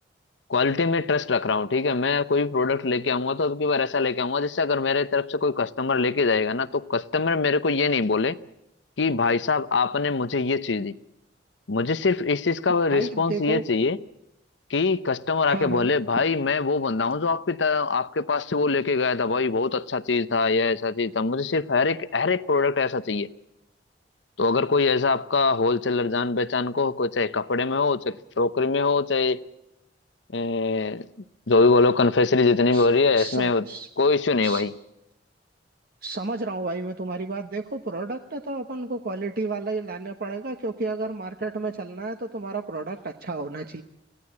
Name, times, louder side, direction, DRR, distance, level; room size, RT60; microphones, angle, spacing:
voice 1, 0.5-8.4 9.0-10.9 11.7-14.0 14.7-23.3 24.4-29.4 30.3-31.0 31.5-33.6 34.0-34.7, left 4 dB, 80° left, 0.8 m, -23 dB
voice 2, 12.7-13.6 15.5-16.2 32.7-32.9 33.2-33.9 34.4-34.6 36.0-43.8, right 3 dB, 55° right, 1.0 m, -32 dB
24.0 x 16.5 x 8.6 m
head